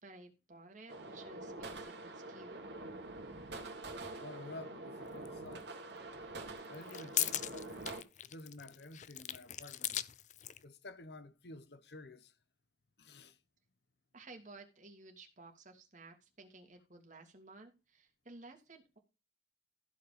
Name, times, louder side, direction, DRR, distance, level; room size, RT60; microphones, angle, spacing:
voice 1, 0.0-2.6 14.1-19.0, right 2 dB, 45° right, 2.9 m, -55 dB
sound 1, 0.9-8.0, right 2 dB, 75° right, 2.7 m, -46 dB
voice 2, 4.1-5.7 6.7-7.8 8.2-9.9 10.6-12.3 13.0-13.4, left 2 dB, 65° left, 1.0 m, -51 dB
sound 2, 5.2-5.3 6.6-10.6, left 12 dB, 40° left, 0.5 m, -39 dB
15.0 x 5.3 x 5.2 m
head